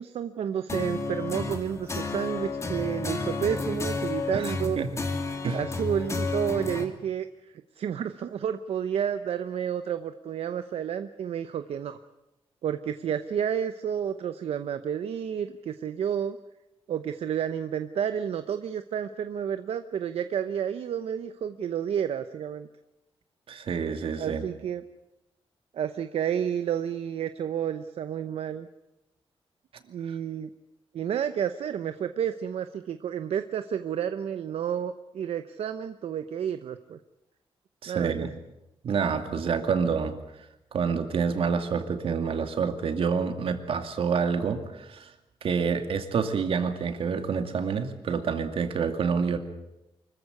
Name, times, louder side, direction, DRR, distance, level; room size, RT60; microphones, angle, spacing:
voice 1, 0.0-4.9 5.5-7.3 7.8-12.0 12.6-16.4 16.9-22.7 24.2-24.8 25.7-28.7 29.9-30.5 30.9-37.0 37.9-38.1, right 8 dB, 85° right, 10 dB, 0.9 m, -30 dB
sound 1, 0.7-6.8, left 3 dB, 30° left, 2.5 m, -31 dB
voice 2, 4.3-4.9 5.4-5.6 23.5-24.4 37.8-38.3 38.8-40.1 40.7-45.1 45.4-49.4, right 6 dB, 65° right, 7 dB, 2.4 m, -28 dB
25.0 x 15.0 x 9.8 m, 0.93 s
wide cardioid pair, 140°, 10 cm